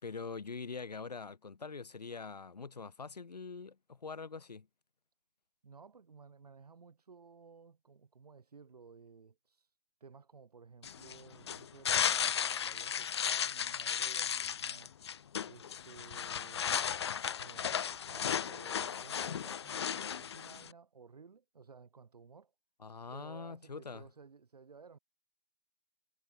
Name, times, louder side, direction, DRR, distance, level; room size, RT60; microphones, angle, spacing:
voice 1, 0.0-4.7 22.8-24.0, left 4 dB, 85° left, 2.0 m, -44 dB
voice 2, 5.6-9.7 10.0-15.0 15.5-16.6 17.2-22.5 23.1-25.0, right 5 dB, 75° right, 2.7 m, -56 dB
sound 1, 10.8-20.7, left 8 dB, 45° left, 0.5 m, -35 dB
hypercardioid pair, 160°, 20 cm